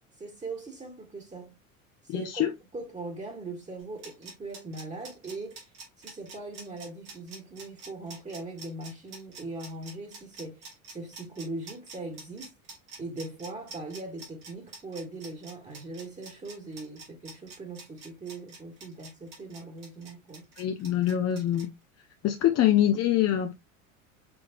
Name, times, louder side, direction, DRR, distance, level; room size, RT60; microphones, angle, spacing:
voice 1, 0.2-1.6 2.0-12.5 13.0-20.4 22.5-22.6, right 2 dB, 15° right, 1.5 m, -40 dB
voice 2, 2.1-2.5 20.6-21.7 22.2-23.5, left 12 dB, 40° left, 0.7 m, -24 dB
sound 1, 3.8-21.7, right 4 dB, 80° right, 2.9 m, -46 dB
6.1 x 3.2 x 2.5 m
hypercardioid pair, 85°, 41 cm